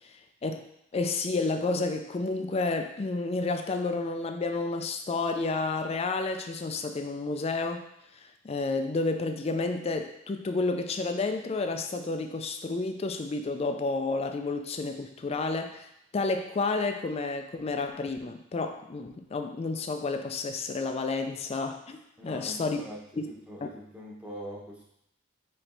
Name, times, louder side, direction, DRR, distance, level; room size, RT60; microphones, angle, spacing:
voice 1, 0.9-7.9 8.4-22.8 23.2-23.3 23.6-23.7, left 3 dB, 35° left, 6 dB, 0.4 m, -30 dB
voice 2, 22.2-24.8, equal, 5° right, -4 dB, 0.9 m, -43 dB
4.4 x 3.1 x 3.9 m, 0.81 s
head